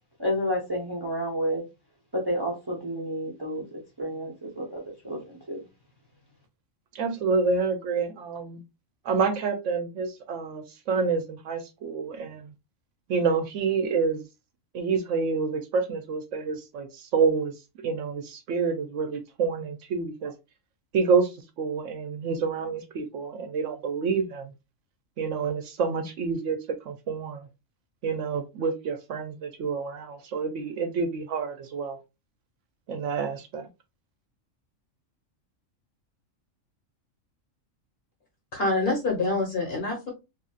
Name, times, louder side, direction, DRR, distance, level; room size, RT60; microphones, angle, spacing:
voice 1, 0.2-1.6 2.1-3.6 4.0-5.6, equal, 20° right, 0.7 m, -30 dB
voice 2, 6.9-8.6 9.0-12.5 13.1-14.2 14.7-17.5 17.8-20.3 20.9-21.3 21.6-24.5 25.2-27.5 28.0-32.0 32.9-33.7, right 5 dB, 70° right, 0.9 m, -28 dB
voice 3, 38.5-40.1, left 3 dB, 50° left, 1.6 m, -26 dB
2.9 x 2.7 x 2.3 m
omnidirectional pair, 1.4 m